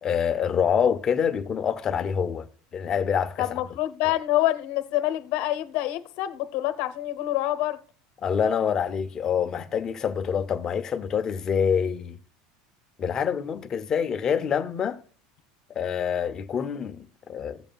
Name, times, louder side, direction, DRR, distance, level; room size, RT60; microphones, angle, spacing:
voice 1, 0.0-2.5 2.7-3.5 8.2-12.2 13.0-15.0 15.7-17.6, left 7 dB, 20° left, 0.6 m, -26 dB
voice 2, 3.4-7.8, left 15 dB, 50° left, 0.9 m, -26 dB
16.5 x 7.2 x 2.3 m
cardioid pair, 175°, 3 cm